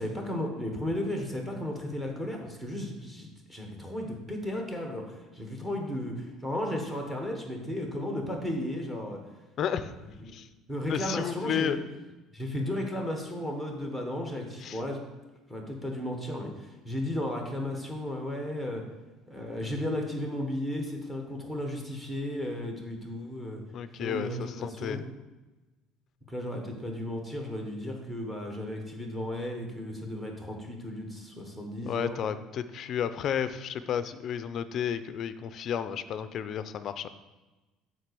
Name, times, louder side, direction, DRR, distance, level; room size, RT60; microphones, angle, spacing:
voice 1, 0.0-9.2 10.2-10.3 10.7-11.8 12.3-15.0 15.5-18.8 19.3-23.6 24.0-25.0 26.3-32.2, left 1 dB, 5° right, 2 dB, 1.2 m, -34 dB
voice 2, 9.6-9.9 10.3-10.5 10.9-11.8 14.6-14.8 23.7-25.0 31.9-37.1, left 8 dB, 40° left, 12 dB, 0.5 m, -32 dB
7.5 x 4.1 x 6.8 m, 1.1 s
cardioid pair, 155°, 0 cm